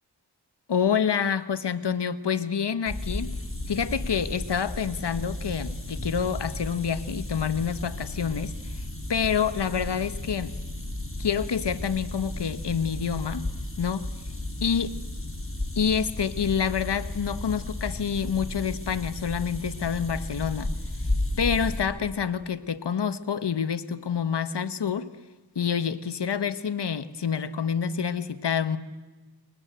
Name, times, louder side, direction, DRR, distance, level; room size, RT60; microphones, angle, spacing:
voice 1, 0.7-3.4 3.7-8.8 9.1-10.5 11.2-13.5 13.8-14.1 14.6-14.9 15.8-20.7 21.4-25.1 25.5-28.8, left 7 dB, 85° left, 14 dB, 1.3 m, -27 dB
sound 1, 2.9-21.8, left 1 dB, 30° left, 5.8 m, -34 dB
28.0 x 23.0 x 8.1 m, 1.2 s
cardioid pair, 40°, 41 cm